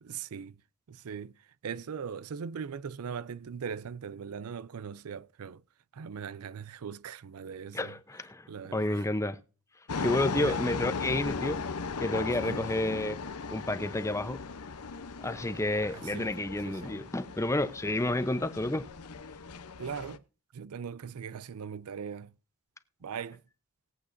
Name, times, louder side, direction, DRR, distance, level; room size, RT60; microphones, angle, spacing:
voice 1, 0.0-0.6 0.9-5.6 5.9-8.0 8.5-9.1 9.9-10.0 10.3-10.6 12.4-12.7 15.8-16.4 16.7-17.0 19.8-20.2 20.5-22.3 23.0-23.4, right 6 dB, 75° right, 0.4 m, -40 dB
voice 2, 7.7-9.4 10.0-11.6 12.0-13.2 13.5-14.4 15.2-18.8, left 1 dB, 15° left, 0.7 m, -30 dB
sound 1, 9.9-20.2, left 4 dB, 80° left, 0.8 m, -37 dB
20.0 x 8.4 x 2.6 m
head